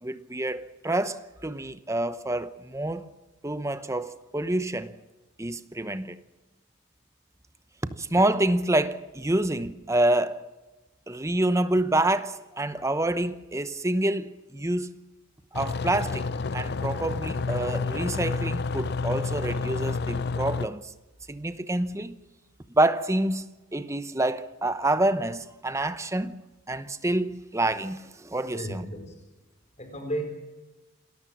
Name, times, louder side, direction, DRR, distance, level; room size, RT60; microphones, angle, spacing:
voice 1, 0.0-3.1 3.4-5.0 5.4-6.2 8.0-10.4 11.1-15.0 15.5-20.9 21.3-22.2 22.7-23.5 23.7-26.4 26.7-28.9, right 1 dB, 15° right, 0.8 m, -27 dB
sound 1, 15.5-20.7, left 4 dB, 50° left, 0.6 m, -29 dB
voice 2, 28.5-29.2 29.8-30.2, right 1 dB, 30° left, 4.4 m, -33 dB
28.0 x 13.5 x 7.5 m
head